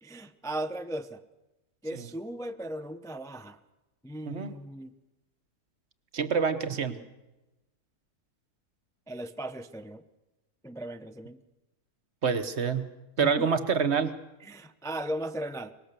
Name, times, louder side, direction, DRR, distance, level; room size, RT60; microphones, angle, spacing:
voice 1, 0.0-1.2 1.8-3.6 4.0-4.9 9.1-10.0 10.6-11.4 13.2-13.5 14.4-15.7, right 1 dB, 5° left, 9 dB, 0.4 m, -37 dB
voice 2, 6.1-7.0 12.2-12.9 13.2-14.1, right 6 dB, 45° right, 11 dB, 1.2 m, -27 dB
24.0 x 20.5 x 6.8 m, 1.1 s
omnidirectional pair, 1.7 m